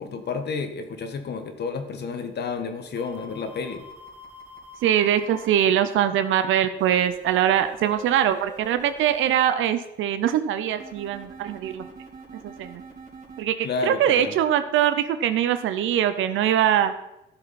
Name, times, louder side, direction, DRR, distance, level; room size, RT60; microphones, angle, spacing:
voice 1, 0.0-3.8 13.6-14.4, left 4 dB, 55° left, 7 dB, 1.5 m, -30 dB
sound 1, 3.0-5.4 6.8-9.4 10.8-13.4, right 3 dB, 35° right, 3.0 m, -44 dB
voice 2, 4.8-11.9 12.4-12.8 13.4-16.9, right 10 dB, 85° right, 11 dB, 0.7 m, -22 dB
13.0 x 7.1 x 4.3 m, 0.89 s
cardioid pair, 90°, 20 cm